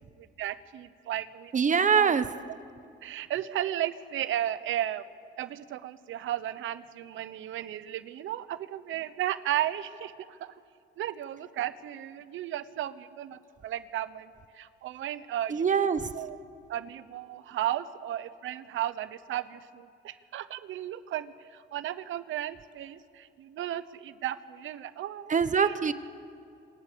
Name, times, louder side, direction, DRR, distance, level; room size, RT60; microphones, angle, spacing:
voice 1, 0.2-1.5 1.9-2.1 3.0-5.0 5.4-10.5 11.0-15.6 16.1-16.4 16.7-25.9, right 12 dB, 80° right, 14 dB, 1.0 m, -34 dB
voice 2, 1.5-2.3 15.5-16.1 25.3-25.9, right 6 dB, 40° right, 12 dB, 1.1 m, -24 dB
27.0 x 25.0 x 6.9 m, 2.5 s
cardioid pair, 90°, 20 cm